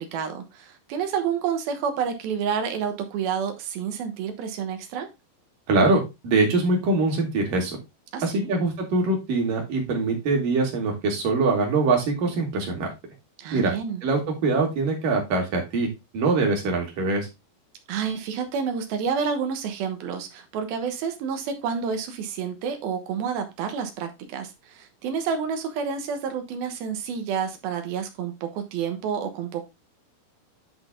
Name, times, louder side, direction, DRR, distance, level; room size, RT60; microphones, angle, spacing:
voice 1, 0.0-5.1 8.1-8.5 13.4-14.0 17.9-29.7, right 7 dB, 80° right, 6 dB, 3.0 m, -29 dB
voice 2, 5.7-7.8 8.2-12.9 13.5-13.7 14.0-15.9 16.1-17.3, right 3 dB, 60° right, 0 dB, 3.8 m, -23 dB
10.5 x 4.0 x 3.7 m, 0.23 s
omnidirectional pair, 4.4 m